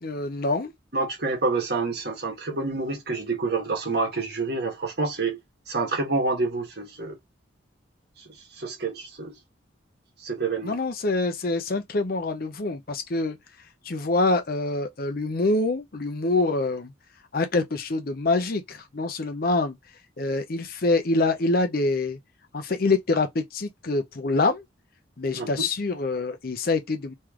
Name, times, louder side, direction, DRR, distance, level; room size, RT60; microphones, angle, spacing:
voice 1, 0.0-0.7 10.6-13.4 13.8-16.9 17.3-19.8 20.2-22.2 22.5-24.6 25.2-27.1, left 2 dB, 50° left, 0.6 m, -25 dB
voice 2, 0.9-5.4 5.7-7.2 8.5-9.3 10.2-10.8 25.3-25.7, right 3 dB, 55° right, 1.4 m, -28 dB
3.2 x 3.2 x 3.6 m
head